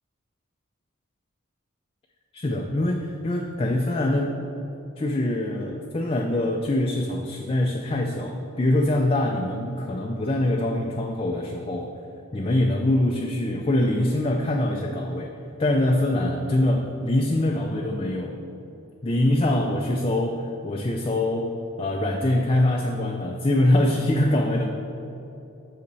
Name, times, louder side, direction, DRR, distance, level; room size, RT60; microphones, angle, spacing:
voice 1, 2.3-4.4 5.0-11.9 12.3-15.3 15.6-18.4 19.0-24.7, left 1 dB, 25° left, 1 dB, 0.4 m, -24 dB
8.4 x 5.8 x 4.0 m, 2.9 s
head